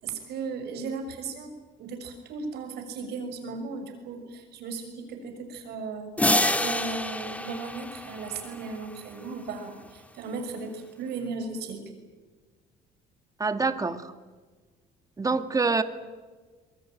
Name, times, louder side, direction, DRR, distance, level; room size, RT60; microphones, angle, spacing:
voice 1, 0.0-11.8, right 4 dB, 75° right, 6 dB, 6.5 m, -36 dB
sound 1, 6.2-8.9, left 1 dB, 10° left, 2.1 m, -27 dB
voice 2, 13.4-14.1 15.2-15.8, right 4 dB, 20° right, 9 dB, 1.9 m, -26 dB
24.0 x 22.5 x 9.3 m, 1.4 s
cardioid pair, 110°, 17 cm